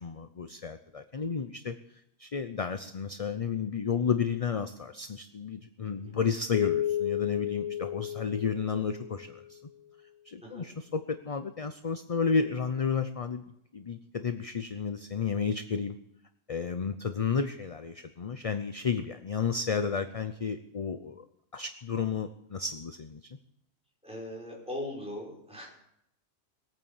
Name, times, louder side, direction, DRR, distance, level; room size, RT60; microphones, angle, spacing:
voice 1, 0.0-9.6 10.3-13.4 13.7-16.0 16.5-21.2 21.5-23.2, left 6 dB, 35° left, 9 dB, 0.6 m, -32 dB
Keyboard (musical), 6.5-9.5, left 12 dB, 75° left, 1.2 m, -32 dB
voice 2, 24.0-25.7, left 1 dB, 5° right, -3 dB, 5.5 m, -40 dB
20.5 x 9.0 x 7.2 m, 0.78 s
omnidirectional pair, 1.4 m